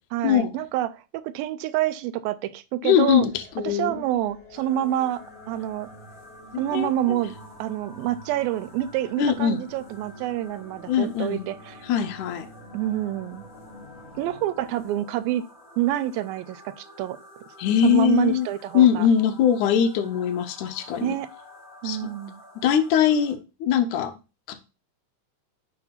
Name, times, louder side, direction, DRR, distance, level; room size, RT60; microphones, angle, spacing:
voice 1, 0.1-3.3 3.6-5.9 6.6-7.3 7.6-11.8 12.7-13.4 14.2-15.4 15.8-17.2 17.8-19.1 20.1-20.2 21.0-21.3 21.8-22.4, right 13 dB, 85° right, 14 dB, 2.4 m, -27 dB
voice 2, 2.8-3.9 6.5-7.2 9.2-9.6 10.9-11.4 11.8-12.5 17.6-18.5 18.7-21.2 21.8-22.1 22.6-24.1 24.5-24.6, left 9 dB, 75° left, 9 dB, 2.0 m, -22 dB
sound 1, 3.1-15.3, equal, 25° left, 1.3 m, -48 dB
sound 2, 4.5-23.3, left 2 dB, ahead, 1.3 m, -49 dB
7.8 x 3.3 x 5.7 m, 0.30 s
omnidirectional pair, 4.1 m